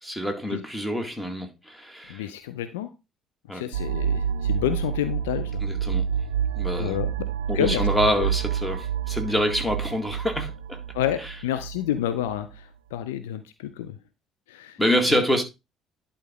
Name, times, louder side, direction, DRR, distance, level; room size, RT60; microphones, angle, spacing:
voice 1, 0.0-2.2 3.5-3.6 5.6-6.1 6.6-7.0 7.5-10.8 14.8-15.4, equal, 10° left, 2.0 m, -26 dB
voice 2, 2.1-2.9 3.5-5.6 6.8-7.1 7.5-7.9 8.2-8.3 10.9-14.0 14.5-14.8 15.1-15.2, left 11 dB, 70° left, 0.5 m, -29 dB
sound 1, 3.7-12.4, right 8 dB, 75° right, 0.3 m, -28 dB
11.0 x 4.2 x 3.7 m
figure-of-eight pair, 50°, 0 cm